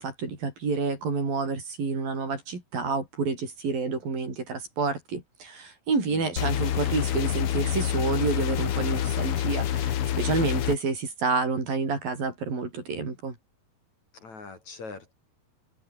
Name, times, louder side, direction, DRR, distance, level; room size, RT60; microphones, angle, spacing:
voice 1, 0.0-13.4, right 4 dB, 70° right, 8.3 m, -29 dB
voice 2, 6.1-6.8 14.1-15.1, left 4 dB, 50° left, 6.0 m, -43 dB
sound 1, 6.4-10.8, left 11 dB, 80° left, 1.3 m, -27 dB
omnidirectional pair, 4.3 m